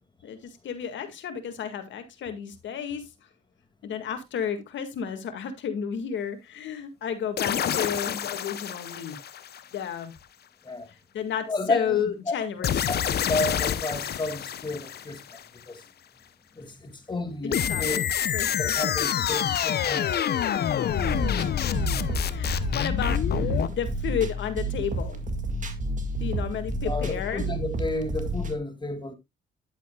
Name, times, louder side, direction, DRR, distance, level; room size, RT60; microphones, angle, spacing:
voice 1, 0.2-3.1 3.8-9.2 9.7-10.1 10.9-12.8 17.4-18.1 18.3-18.7 19.1-19.2 22.3-23.2 23.7-25.2 26.2-27.5, left 7 dB, 70° left, 2.0 m, -32 dB
sound 1, 7.4-10.0 12.6-15.4 17.5-23.7, left 9 dB, 55° left, 0.8 m, -27 dB
voice 2, 11.5-12.0 12.3-12.4 12.6-15.4 15.7-15.8 16.5-18.0 18.5-20.1 23.6-23.8 26.8-29.1, left 2 dB, 25° left, 2.2 m, -31 dB
sound 2, 20.9-28.6, right 1 dB, 40° right, 1.9 m, -30 dB
10.5 x 8.4 x 2.3 m
cardioid pair, 90°, 20 cm